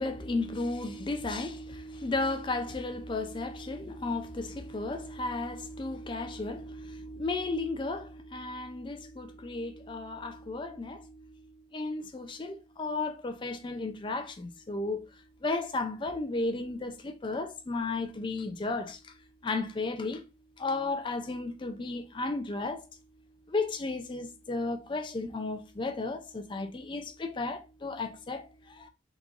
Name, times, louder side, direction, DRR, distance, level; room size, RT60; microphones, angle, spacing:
voice 1, 0.0-19.1 19.4-20.2 20.6-22.9 23.5-28.9, left 3 dB, 25° left, 0.4 m, -34 dB
3.7 x 3.0 x 2.4 m
head